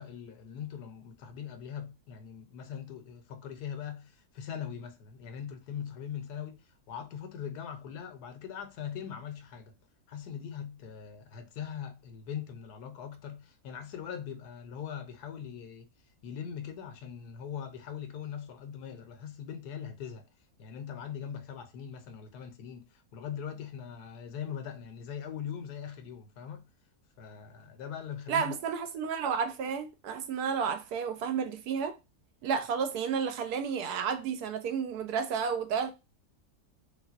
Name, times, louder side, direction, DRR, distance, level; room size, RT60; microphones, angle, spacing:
voice 1, 0.0-9.7 10.1-15.9 16.2-20.3 20.6-26.7 27.2-28.5, left 8 dB, 85° left, 1.2 m, -41 dB
voice 2, 28.3-32.0 32.4-35.9, right 6 dB, 85° right, 1.2 m, -31 dB
3.3 x 3.0 x 2.4 m
omnidirectional pair, 1.7 m